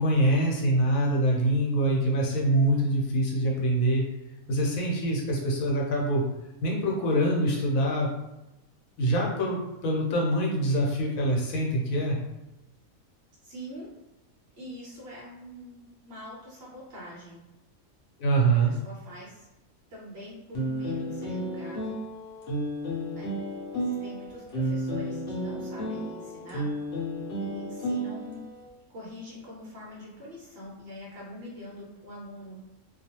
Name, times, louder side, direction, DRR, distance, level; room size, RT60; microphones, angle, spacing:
voice 1, 0.0-4.0 4.5-6.2 6.6-8.1 9.0-12.2 18.2-18.7, right 1 dB, 75° left, -2 dB, 1.1 m, -24 dB
voice 2, 13.4-13.9 14.6-17.4 18.5-19.5 19.9-22.0 23.1-23.3 23.7-26.7 27.4-28.5 28.9-32.6, equal, 55° right, -5 dB, 0.9 m, -44 dB
sound 1, 20.5-28.6, equal, 55° left, 0.8 m, -32 dB
2.4 x 2.3 x 2.8 m, 0.94 s
omnidirectional pair, 1.5 m